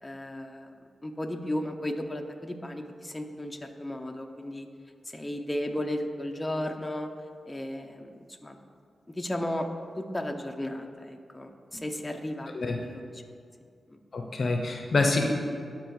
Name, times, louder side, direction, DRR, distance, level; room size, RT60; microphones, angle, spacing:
voice 1, 0.0-0.7 1.0-4.7 5.0-7.1 7.5-8.6 9.2-9.7 10.0-13.2 13.9-14.0, left 1 dB, 20° left, 3 dB, 0.7 m, -34 dB
voice 2, 14.1-15.3, left 3 dB, 60° left, 3 dB, 0.7 m, -26 dB
13.0 x 4.4 x 3.2 m, 2.3 s
supercardioid pair, 45°, 0 cm